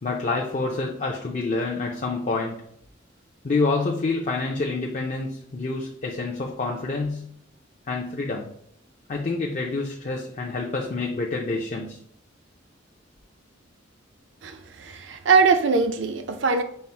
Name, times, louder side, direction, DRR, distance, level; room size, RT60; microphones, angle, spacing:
voice 1, 0.0-2.6 3.4-7.3 7.9-8.5 9.1-12.0, left 3 dB, 40° left, 0.5 m, -27 dB
voice 2, 14.4-16.6, right 5 dB, 70° right, 0.5 m, -21 dB
5.4 x 2.0 x 4.4 m
head